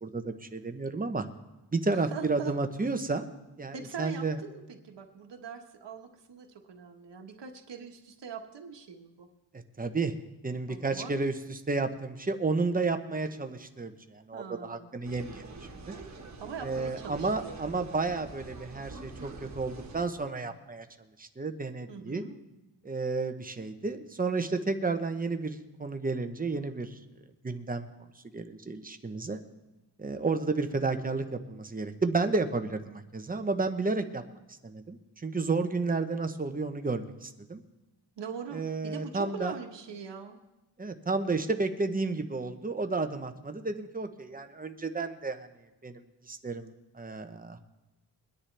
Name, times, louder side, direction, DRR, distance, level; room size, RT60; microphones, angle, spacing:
voice 1, 0.0-1.3 1.7-3.2 3.6-4.4 9.5-10.1 10.4-15.4 15.9-16.0 16.6-20.9 21.2-22.2 22.8-27.0 27.4-27.9 28.2-29.4 30.0-34.2 34.6-37.6 38.5-39.5 40.8-45.5 45.8-47.6, right 3 dB, 20° right, 7 dB, 0.8 m, -32 dB
voice 2, 1.9-2.5 3.7-9.3 10.7-11.2 14.3-14.9 16.4-17.6 21.9-22.4 38.2-40.4, right 6 dB, 80° right, 3 dB, 1.4 m, -42 dB
sound 1, 15.0-20.1, right 3 dB, 40° right, 1.5 m, -45 dB
22.5 x 10.5 x 3.3 m, 1.0 s
wide cardioid pair, 155°, 42 cm